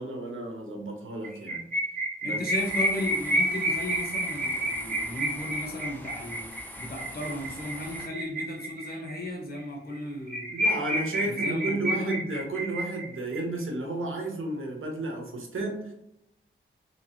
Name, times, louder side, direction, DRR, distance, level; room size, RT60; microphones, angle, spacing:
voice 1, 0.0-1.6 2.2-2.4 10.5-15.9, right 2 dB, 75° right, 1 dB, 1.0 m, -32 dB
sound 1, 1.2-9.2 9.6-9.7 9.9-10.0 10.3-13.4, right 1 dB, 40° right, 1.2 m, -30 dB
voice 2, 2.2-6.5 6.8-10.5 11.2-12.2, left 1 dB, 45° left, 0 dB, 1.2 m, -35 dB
sound 2, 2.5-8.1, left 1 dB, 10° left, 0.7 m, -44 dB
3.5 x 3.1 x 2.8 m, 0.79 s
wide cardioid pair, 75°, 21 cm